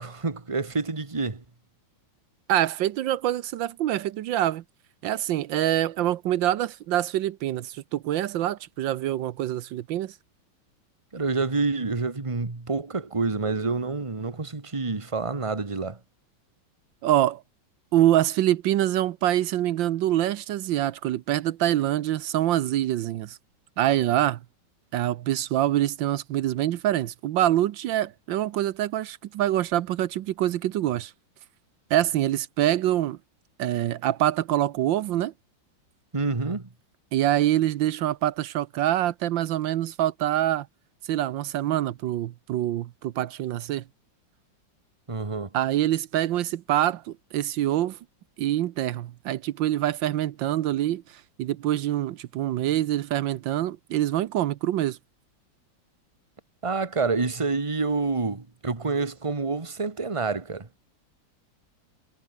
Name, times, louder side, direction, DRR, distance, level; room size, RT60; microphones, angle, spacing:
voice 1, 0.0-1.4 11.1-16.0 36.1-36.7 45.1-45.5 56.6-60.7, right 4 dB, 15° right, 1.6 m, -28 dB
voice 2, 2.5-4.6 5.0-10.1 17.0-17.4 17.9-23.4 23.8-24.4 24.9-31.1 31.9-33.2 33.6-35.3 37.1-40.7 41.0-43.8 45.5-48.0 48.4-55.0, right 13 dB, 80° right, 1.5 m, -25 dB
omnidirectional pair, 2.0 m